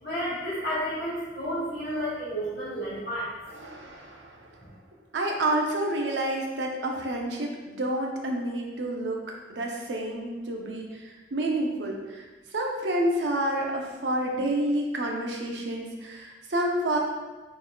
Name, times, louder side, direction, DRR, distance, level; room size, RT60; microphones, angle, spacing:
voice 1, 0.0-3.3, equal, 50° left, -13 dB, 1.3 m, -31 dB
voice 2, 3.5-4.6 5.1-9.2 9.5-12.3 12.5-17.0, right 1 dB, 85° right, 0 dB, 0.6 m, -29 dB
3.9 x 3.8 x 2.3 m, 1.2 s
head